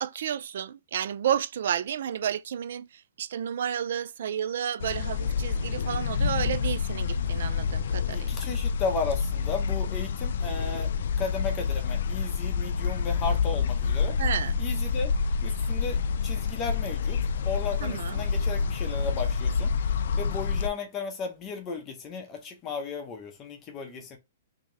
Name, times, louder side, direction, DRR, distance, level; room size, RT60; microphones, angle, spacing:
voice 1, 0.0-8.3 14.2-14.6 17.8-18.2, right 9 dB, 65° right, 0.3 m, -31 dB
sound 1, 4.8-20.7, left 6 dB, 65° left, 0.3 m, -28 dB
voice 2, 8.1-10.9 11.2-14.2 14.6-15.1 15.4-19.7 20.2-24.2, left 4 dB, 20° left, 0.8 m, -35 dB
2.9 x 2.8 x 3.7 m
hypercardioid pair, 160°, 0 cm